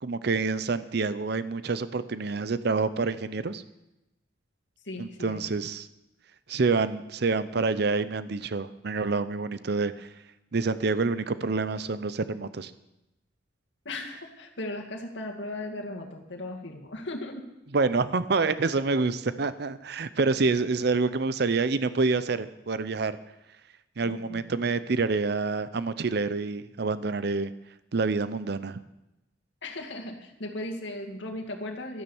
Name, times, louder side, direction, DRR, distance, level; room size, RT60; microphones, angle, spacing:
voice 1, 0.0-3.6 5.0-5.9 6.5-10.1 10.5-12.7 17.7-23.2 24.0-27.5 27.9-28.8, right 4 dB, 60° right, 14 dB, 0.6 m, -27 dB
voice 2, 4.9-5.5 13.9-17.5 24.0-24.5 29.6-32.0, left 1 dB, 70° left, 2 dB, 2.1 m, -37 dB
13.0 x 10.5 x 7.1 m, 0.93 s
head